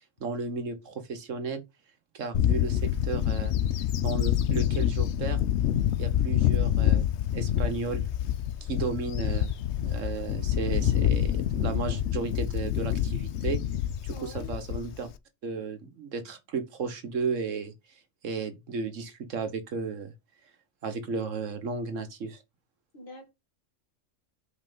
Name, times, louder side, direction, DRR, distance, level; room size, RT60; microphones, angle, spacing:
voice 1, 0.2-1.6 2.1-3.5 4.0-5.4 6.0-7.1 7.3-8.0 8.6-9.5 9.8-13.6 14.0-15.1 15.4-17.7 18.2-20.1 20.8-22.4, right 4 dB, 80° right, 1.5 m, -34 dB
Bird / Wind, 2.3-15.1, left 11 dB, 70° left, 0.8 m, -27 dB
voice 2, 14.1-14.5 22.9-23.3, left 2 dB, 45° left, 2.1 m, -44 dB
5.6 x 4.4 x 5.4 m
omnidirectional pair, 1.3 m